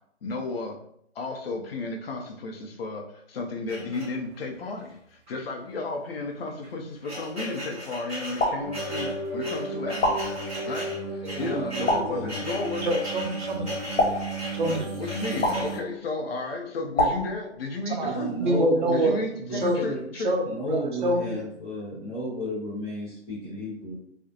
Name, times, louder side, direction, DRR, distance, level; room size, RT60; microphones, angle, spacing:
voice 1, 0.2-0.8 1.1-10.2 10.6-12.9 15.0-18.3 18.9-20.3, left 2 dB, 55° left, 2 dB, 0.6 m, -33 dB
sound 1, 3.7-4.5 5.3-5.4 5.7-5.8 6.5-15.8, equal, 10° right, 0.8 m, -37 dB
sound 2, 8.4-9.3 10.0-10.9 11.9-12.7 14.0-14.9 15.4-16.2 17.0-18.0, left 1 dB, 80° left, 1.1 m, -28 dB
sound 3, 8.6-15.8, right 2 dB, 80° right, 0.8 m, -35 dB
voice 2, 11.4-12.4 18.0-19.1 19.4-20.0 20.4-24.0, equal, 20° left, -11 dB, 0.9 m, -33 dB
voice 3, 12.8-13.8 14.5-14.9 17.9-18.1 18.4-19.2 19.5-19.8 20.2-21.4, right 1 dB, 45° right, 0 dB, 0.6 m, -26 dB
2.4 x 2.1 x 2.8 m, 0.69 s
hypercardioid pair, 150°, 36 cm